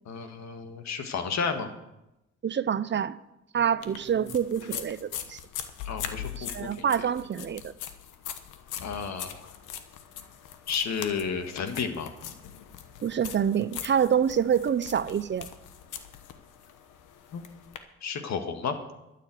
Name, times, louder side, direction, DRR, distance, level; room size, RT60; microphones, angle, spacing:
voice 1, 0.1-1.7 5.9-6.5 8.8-9.5 10.7-12.1 17.3-17.4 18.0-18.8, left 6 dB, 65° left, 1.7 m, -32 dB
voice 2, 2.4-3.2 3.5-5.4 6.4-7.7 13.0-15.5, right 8 dB, 40° right, 0.6 m, -26 dB
sound 1, 3.8-17.8, left 9 dB, 90° left, 1.2 m, -41 dB
12.5 x 7.7 x 7.7 m
cardioid pair, 90°, 30 cm